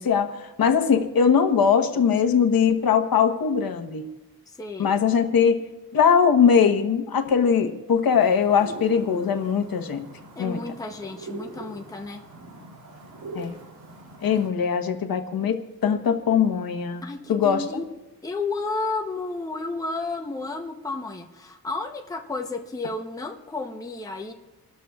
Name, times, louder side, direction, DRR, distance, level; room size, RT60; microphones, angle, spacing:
voice 1, 0.0-4.1 4.8-5.6 5.9-10.1 10.4-10.6 13.3-13.5 14.2-17.0 17.3-17.8, left 7 dB, 70° left, 7 dB, 1.1 m, -21 dB
voice 2, 4.6-5.0 10.4-12.2 17.0-17.8 18.2-24.3, left 3 dB, 10° left, 3 dB, 0.8 m, -32 dB
sound 1, 8.1-14.5, right 3 dB, 90° right, 3.0 m, -42 dB
28.5 x 13.0 x 2.4 m, 1.1 s
wide cardioid pair, 170°, 37 cm